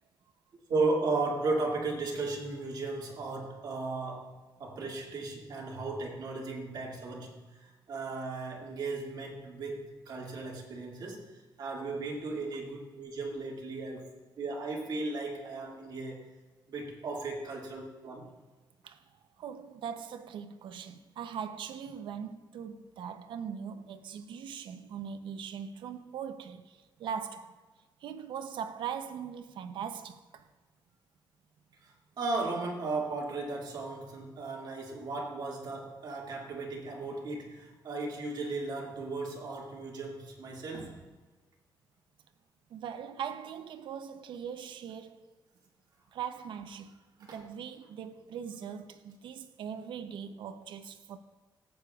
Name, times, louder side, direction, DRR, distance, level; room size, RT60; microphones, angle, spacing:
voice 1, 0.7-7.4 7.9-11.2 11.6-14.1 14.4-16.2 16.7-18.3 32.2-41.0 47.3-47.4, right 3 dB, 60° right, 2.1 m, -35 dB
voice 2, 19.4-27.6 28.0-30.5 42.7-45.2 46.1-47.0 47.3-51.2, right 7 dB, 85° right, 0.6 m, -40 dB
14.5 x 8.5 x 2.3 m
cardioid pair, 140°, 8 cm